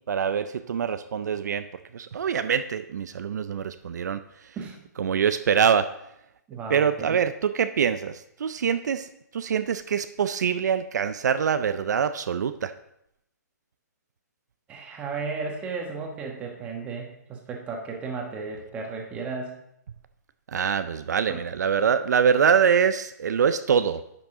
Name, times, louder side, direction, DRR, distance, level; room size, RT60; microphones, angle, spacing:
voice 1, 0.1-1.7 1.9-4.2 5.0-5.9 6.7-12.7 20.5-24.0, right 7 dB, 70° right, 11 dB, 0.4 m, -24 dB
voice 2, 6.5-7.2 14.7-19.5 21.3-21.4, right 4 dB, 15° right, 1 dB, 1.2 m, -34 dB
10.5 x 6.0 x 3.7 m, 0.80 s
hypercardioid pair, 160°, 10 cm